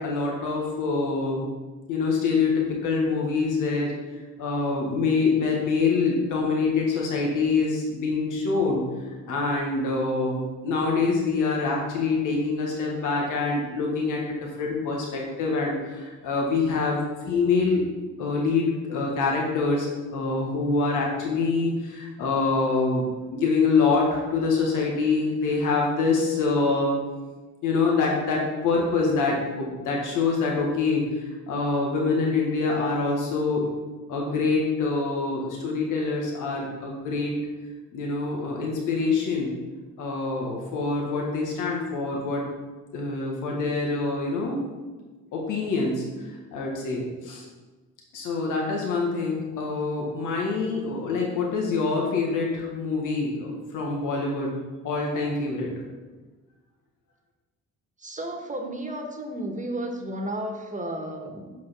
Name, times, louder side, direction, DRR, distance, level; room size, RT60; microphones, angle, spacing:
voice 1, 0.0-1.5 1.9-3.9 4.4-8.8 9.3-17.0 17.2-17.8 18.2-23.0 23.3-26.9 27.6-31.0 31.5-33.7 34.1-37.3 37.9-39.5 40.0-42.4 42.9-44.6 45.3-47.4 48.1-54.6 54.8-55.7, left 4 dB, 80° left, -1 dB, 1.5 m, -25 dB
voice 2, 58.0-61.5, right 1 dB, 25° right, 3 dB, 1.4 m, -33 dB
5.8 x 4.7 x 6.2 m, 1.3 s
supercardioid pair, 60°, 31 cm